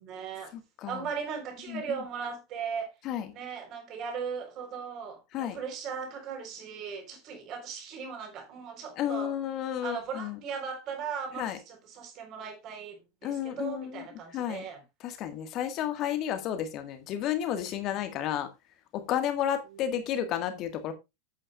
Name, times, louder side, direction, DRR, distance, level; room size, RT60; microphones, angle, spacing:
voice 1, 0.0-0.5 0.8-2.9 3.3-9.3 9.8-14.8, right 6 dB, 35° right, 4.0 m, -38 dB
voice 2, 0.5-1.1 1.7-2.0 3.0-3.3 5.3-5.6 9.0-10.4 11.4-11.6 13.2-14.7 15.0-18.5 18.9-20.9, left 10 dB, 35° left, 1.7 m, -32 dB
12.5 x 8.7 x 2.4 m
figure-of-eight pair, 90°, 0 cm